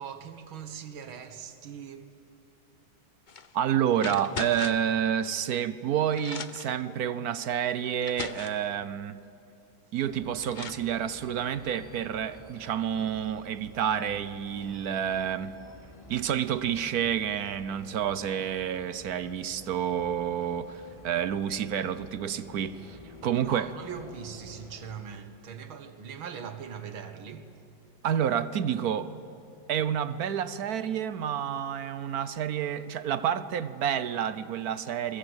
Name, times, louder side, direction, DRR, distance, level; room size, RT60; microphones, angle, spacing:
voice 1, 0.0-2.1 23.3-27.6, right 7 dB, 90° right, 2.2 m, -41 dB
sound 1, 3.3-3.5 4.0-4.9 5.8-5.9 6.1-6.8 7.6-7.7 8.0-8.7 10.0-10.1 10.4-10.9, left 6 dB, 70° left, 0.4 m, -39 dB
voice 2, 3.5-9.2 9.9-15.6 16.1-23.0 23.2-23.7 28.0-29.1 29.7-35.2, right 9 dB, 60° right, 1.0 m, -29 dB
sound 2, 10.0-24.9, left 1 dB, 15° left, 2.3 m, -50 dB
28.0 x 22.0 x 8.0 m
omnidirectional pair, 2.2 m